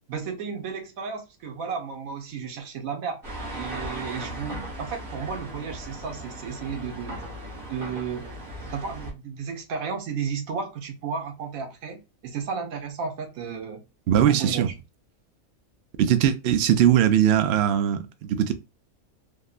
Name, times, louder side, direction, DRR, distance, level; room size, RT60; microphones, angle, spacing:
voice 1, 0.0-3.2 3.5-7.2 7.6-8.4 8.7-13.8 14.2-14.8, right 6 dB, 90° right, 1.2 m, -33 dB
sound 1, 3.2-9.1, right 1 dB, 45° right, 1.4 m, -37 dB
voice 2, 14.1-14.7 16.0-18.5, right 10 dB, 65° right, 0.7 m, -20 dB
3.6 x 2.1 x 2.4 m
omnidirectional pair, 1.4 m